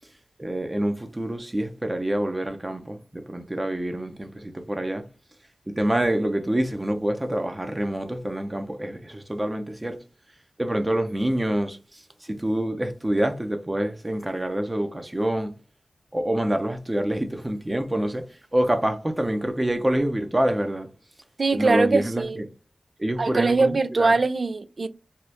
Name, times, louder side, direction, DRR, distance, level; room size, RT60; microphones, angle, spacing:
voice 1, 0.4-5.0 5.7-10.0 10.6-15.5 16.1-20.9 21.5-22.5 23.0-24.1, right 1 dB, 25° right, 0.6 m, -26 dB
voice 2, 21.4-22.4 23.2-24.9, right 3 dB, 65° right, 0.3 m, -22 dB
2.8 x 2.4 x 3.3 m
cardioid pair, 45°, 0 cm